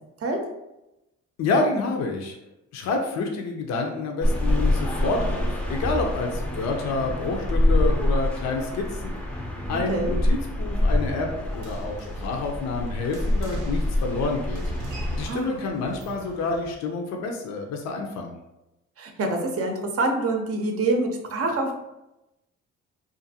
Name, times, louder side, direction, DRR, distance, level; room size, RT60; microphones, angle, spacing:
voice 1, 1.4-2.4 2.7-9.2 9.7-14.6 15.1-18.3, left 3 dB, 60° left, 2 dB, 0.5 m, -28 dB
sound 1, 4.2-15.3, left 1 dB, 5° left, 0.4 m, -26 dB
sound 2, 11.5-16.7, right 3 dB, 90° right, 0.7 m, -42 dB
voice 2, 15.3-15.6 19.0-21.8, right 2 dB, 50° right, 3 dB, 0.6 m, -26 dB
2.5 x 2.4 x 2.7 m, 0.94 s
cardioid pair, 90°, 30 cm